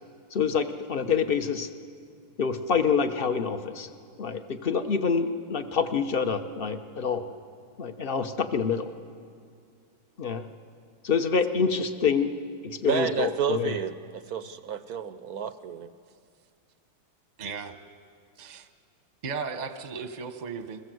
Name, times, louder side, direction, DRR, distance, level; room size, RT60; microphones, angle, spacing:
voice 1, 0.3-1.7 2.4-3.9 4.2-7.3 7.8-8.9 10.2-10.5 11.0-12.3 12.6-13.7, left 6 dB, 45° left, 8 dB, 0.7 m, -26 dB
voice 2, 12.8-15.9, right 8 dB, 65° right, 11 dB, 0.9 m, -31 dB
voice 3, 17.4-17.7 18.4-18.7 19.2-20.8, right 5 dB, 30° right, 8 dB, 0.8 m, -35 dB
30.0 x 22.0 x 7.9 m, 2.3 s
omnidirectional pair, 2.4 m